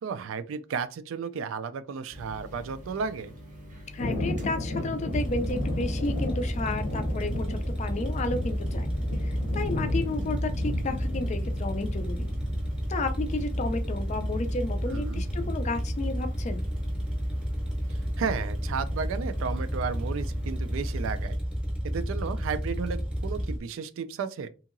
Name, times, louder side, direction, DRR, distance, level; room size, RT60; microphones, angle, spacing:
voice 1, 0.0-3.3 14.9-15.2 18.2-21.4 21.8-24.5, right 6 dB, 80° right, 0.3 m, -33 dB
sound 1, 2.1-21.3, equal, 40° right, 0.6 m, -46 dB
voice 2, 3.9-8.9 9.2-12.3 12.9-16.6, left 2 dB, 35° left, 0.3 m, -32 dB
Thunder, 4.0-15.5, left 1 dB, 90° left, 0.7 m, -35 dB
sound 2, 5.1-23.6, equal, 5° right, 0.7 m, -31 dB
2.8 x 2.7 x 2.5 m
head